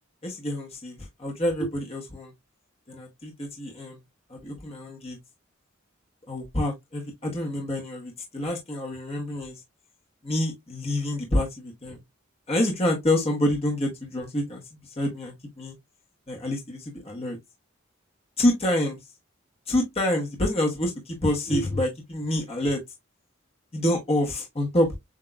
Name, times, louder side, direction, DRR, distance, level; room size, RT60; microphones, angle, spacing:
voice 1, 0.2-2.3 2.9-4.0 4.3-5.2 6.3-9.6 10.2-12.0 12.5-14.6 15.0-15.7 16.3-17.4 18.4-19.0 19.7-22.8 23.7-25.0, left 1 dB, 30° left, 1.2 m, -27 dB
7.4 x 2.8 x 2.2 m
head